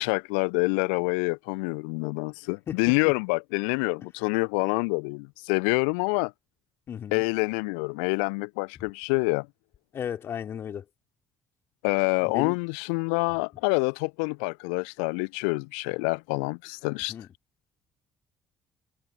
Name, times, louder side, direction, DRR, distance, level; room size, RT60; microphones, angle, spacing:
voice 1, 0.0-6.3 7.1-9.5 11.8-17.1, left 37 dB, 70° left, 1.1 m, -27 dB
voice 2, 6.9-7.2 9.9-10.8 12.2-12.6 17.1-17.3, left 8 dB, 45° left, 4.1 m, -35 dB
figure-of-eight pair, 45°, 6 cm